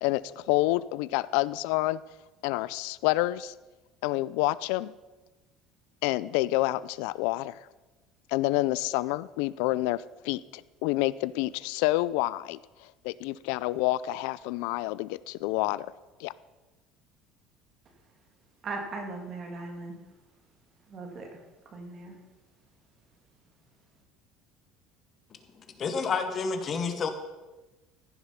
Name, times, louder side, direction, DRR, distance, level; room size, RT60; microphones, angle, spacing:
voice 1, 0.0-2.0 2.4-3.5 4.0-4.9 6.0-7.6 8.3-12.6 13.0-15.9 16.2-16.3, left 18 dB, 85° left, 19 dB, 0.3 m, -28 dB
voice 2, 18.6-20.0 20.9-21.3 21.7-22.2, right 3 dB, 30° right, 3 dB, 2.1 m, -38 dB
voice 3, 25.8-27.1, left 5 dB, 30° left, 8 dB, 0.9 m, -29 dB
15.0 x 7.1 x 5.7 m, 1.1 s
cardioid pair, 165°, 0 cm